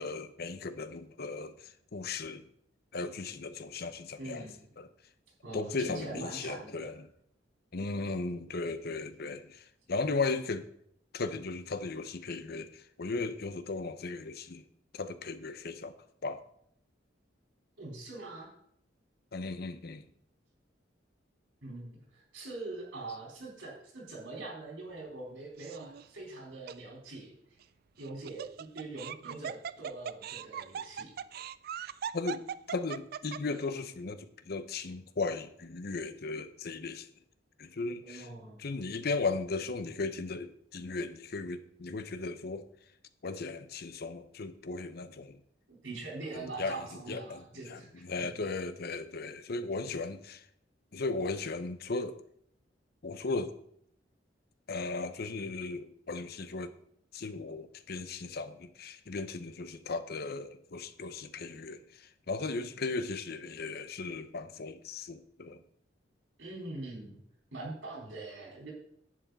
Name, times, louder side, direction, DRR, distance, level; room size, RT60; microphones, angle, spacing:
voice 1, 0.0-2.5 2.9-4.5 4.8-4.9 5.5-7.1 7.7-10.7 11.1-14.6 14.9-15.9 16.2-16.4 19.3-20.0 32.1-32.4 32.7-37.1 37.6-38.3 38.6-42.7 43.2-45.4 46.4-46.8 47.1-50.4 50.9-52.2 53.0-53.6 54.7-56.7 57.1-65.6, left 3 dB, 55° left, 0.7 m, -36 dB
voice 2, 4.2-4.7 5.4-7.0 17.8-18.5 21.6-27.6 28.0-31.1 38.0-38.7 45.8-48.3 66.4-67.2 67.5-68.7, right 2 dB, 90° right, 4.0 m, -43 dB
Laughter, 25.6-26.1 26.7-26.8 28.0-33.6, right 8 dB, 55° right, 0.3 m, -40 dB
10.5 x 8.4 x 4.0 m
head